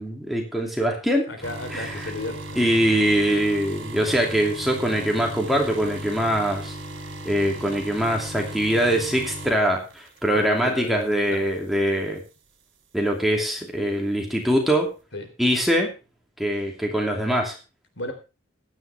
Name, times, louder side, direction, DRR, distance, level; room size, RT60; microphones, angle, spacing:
voice 1, 0.0-1.3 1.7-2.1 2.6-6.7 7.2-12.2 12.9-14.9 15.4-15.9 16.4-17.6, equal, ahead, 0 dB, 2.7 m, -23 dB
voice 2, 1.3-2.7 10.3-10.9 11.3-11.4 15.1-15.3 18.0-18.1, left 2 dB, 65° left, 6 dB, 3.7 m, -34 dB
sound 1, 1.4-10.6 11.0-11.3 12.2-12.3, right 1 dB, 70° right, 4.1 m, -37 dB
16.0 x 11.5 x 3.5 m, 0.30 s
head